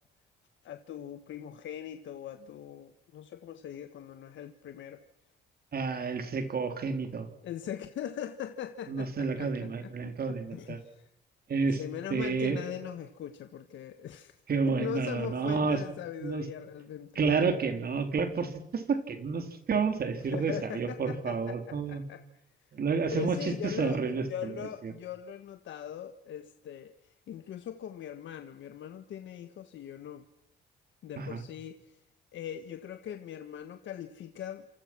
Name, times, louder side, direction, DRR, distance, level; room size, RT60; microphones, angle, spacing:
voice 1, 0.6-5.0 7.4-11.1 11.7-14.3 14.7-17.1 20.3-22.2 23.0-24.0 24.3-30.2 31.0-32.0 32.3-34.7, left 10 dB, 70° left, 8 dB, 1.4 m, -41 dB
voice 2, 5.7-7.3 8.9-10.8 11.5-11.8 12.1-12.7 14.5-15.8 16.2-16.5 17.2-22.0 22.7-24.9 31.2-31.4, right 5 dB, 50° right, 7 dB, 3.7 m, -30 dB
28.0 x 26.0 x 6.1 m, 0.77 s
cardioid pair, 90°, 20 cm